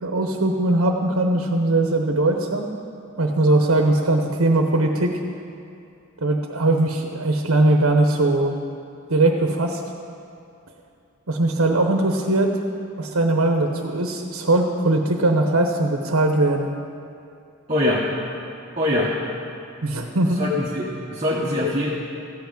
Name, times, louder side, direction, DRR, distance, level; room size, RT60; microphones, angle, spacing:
voice 1, 0.0-2.7 3.2-5.2 6.2-8.6 9.1-9.8 11.3-12.6 13.0-16.7 19.8-20.4, right 2 dB, 75° right, 3 dB, 0.9 m, -20 dB
voice 2, 17.7-18.0 18.8-19.2 20.4-21.9, left 1 dB, 30° right, -6 dB, 1.2 m, -23 dB
14.5 x 5.9 x 8.8 m, 2.6 s
head